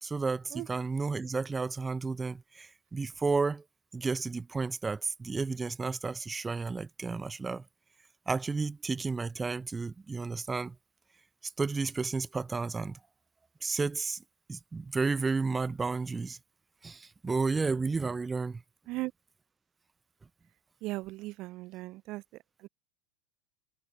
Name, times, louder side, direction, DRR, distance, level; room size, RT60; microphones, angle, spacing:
voice 1, 0.0-3.6 3.9-7.6 8.3-10.7 11.6-13.0 13.6-14.2 14.5-16.4 16.8-18.6, right 4 dB, 15° right, 0.8 m, -32 dB
voice 2, 20.8-22.2, right 19 dB, 45° right, 0.7 m, -37 dB
figure-of-eight pair, 80°, 0 cm